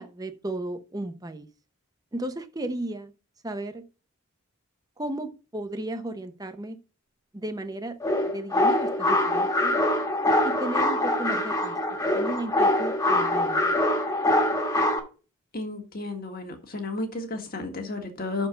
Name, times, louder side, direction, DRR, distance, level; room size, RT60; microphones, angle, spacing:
voice 1, 0.0-1.5 2.1-3.1 3.4-3.8 5.0-6.8 7.3-7.9 8.3-9.8 10.4-13.7, right 1 dB, 20° right, 0.7 m, -34 dB
sound 1, 8.0-15.0, left 1 dB, 15° left, 1.3 m, -24 dB
voice 2, 15.5-18.5, left 2 dB, 45° left, 1.6 m, -33 dB
6.5 x 4.4 x 6.6 m
head